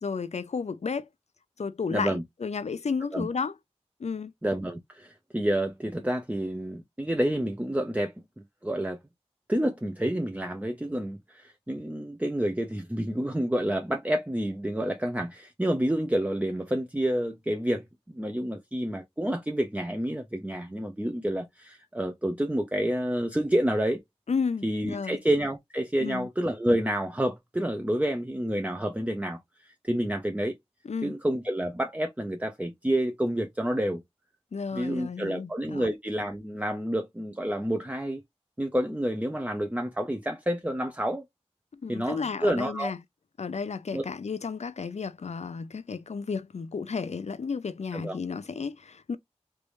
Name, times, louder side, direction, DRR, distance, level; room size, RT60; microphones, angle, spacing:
voice 1, 0.0-1.1 1.6-3.5 4.0-4.3 24.3-25.2 26.0-26.3 30.8-31.1 34.5-35.9 41.7-43.0 43.4-49.2, left 5 dB, 75° left, 0.4 m, -32 dB
voice 2, 1.9-2.2 3.1-3.3 4.4-8.1 8.6-9.0 9.5-17.9 18.1-24.0 24.6-30.6 31.0-34.0 34.7-38.2 38.6-41.2 41.9-42.9 43.9-44.0 47.9-48.2, right 1 dB, 15° right, 0.6 m, -29 dB
3.3 x 2.6 x 3.1 m
wide cardioid pair, 45°, 11 cm